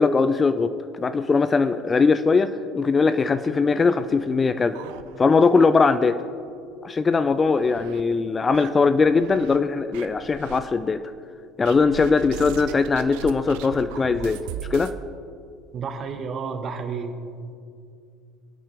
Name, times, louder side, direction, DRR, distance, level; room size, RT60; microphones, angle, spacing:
voice 1, 0.0-4.8 5.2-6.2 6.8-11.0 11.6-14.4 14.7-14.9, left 4 dB, 25° left, 12 dB, 0.5 m, -20 dB
sound 1, 4.1-5.6 5.9-6.0 6.4-6.5 7.1-8.0 8.5-9.6 9.9-10.6 11.6-15.0, right 10 dB, 60° right, 0.5 m, -39 dB
voice 2, 15.7-17.2, right 5 dB, 40° right, 7 dB, 1.3 m, -31 dB
25.5 x 8.6 x 3.5 m, 2.4 s
figure-of-eight pair, 65°, 0 cm